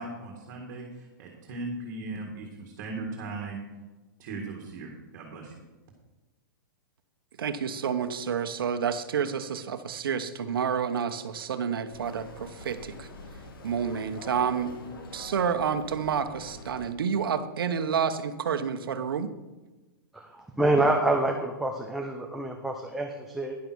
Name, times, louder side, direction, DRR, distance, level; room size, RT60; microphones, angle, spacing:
voice 1, 0.0-3.6 4.2-5.5, right 3 dB, 40° right, 1 dB, 2.0 m, -38 dB
voice 2, 7.4-13.1 13.6-14.7 15.1-19.3, right 7 dB, 85° right, 10 dB, 1.1 m, -29 dB
sound 1, 11.9-16.9, left 2 dB, 80° left, 1.9 m, -45 dB
voice 3, 20.1-23.6, right 2 dB, ahead, 1 dB, 0.6 m, -27 dB
10.5 x 7.1 x 6.2 m, 1.1 s
hypercardioid pair, 165°, 12 cm